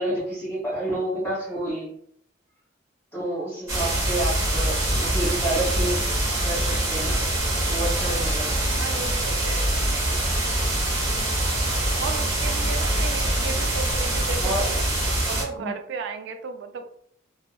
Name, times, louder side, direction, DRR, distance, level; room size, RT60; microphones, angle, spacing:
voice 1, 0.0-1.9 3.1-6.0 6.4-7.2 7.7-8.5 14.4-14.6 15.6-15.7, right 1 dB, 10° left, -8 dB, 1.2 m, -29 dB
sound 1, 3.7-15.4, right 1 dB, 15° right, 0.8 m, -24 dB
voice 2, 8.1-9.9 12.0-14.8 15.2-16.9, right 5 dB, 65° right, 6 dB, 0.3 m, -35 dB
2.6 x 2.3 x 2.3 m, 0.65 s
head